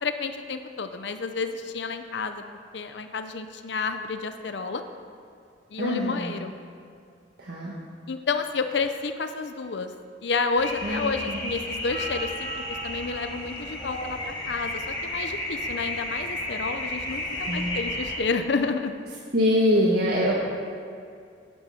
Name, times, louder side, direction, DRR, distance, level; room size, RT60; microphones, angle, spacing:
voice 1, 0.0-2.4 2.7-4.8 5.7-6.5 8.1-9.9 10.2-18.9, left 4 dB, 65° left, 8 dB, 0.6 m, -30 dB
voice 2, 5.8-6.4 7.4-7.7 10.8-11.4 17.5-17.8 19.3-20.3, equal, 55° right, -5 dB, 1.5 m, -24 dB
sound 1, 10.6-18.2, left 1 dB, 25° left, 2.8 m, -32 dB
12.0 x 8.9 x 5.8 m, 2.4 s
head